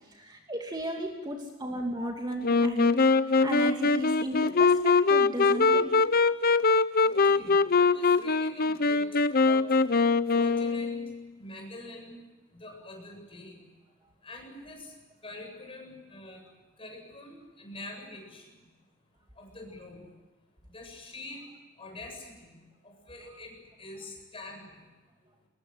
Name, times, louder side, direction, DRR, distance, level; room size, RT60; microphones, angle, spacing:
voice 1, 0.1-5.9, right 1 dB, 20° right, 2 dB, 2.7 m, -35 dB
Wind instrument woodwind instrument, 2.4-11.2, left 4 dB, 45° left, 0.8 m, -23 dB
voice 2, 7.0-9.1 9.3-9.7 10.3-11.1 11.4-12.2 12.6-13.6 14.2-14.9 15.2-16.4 16.8-18.4 19.4-20.0 20.7-21.5 21.8-22.5 22.8-24.8, left 2 dB, 25° left, 2 dB, 7.7 m, -45 dB
24.0 x 21.0 x 9.6 m, 1.2 s
head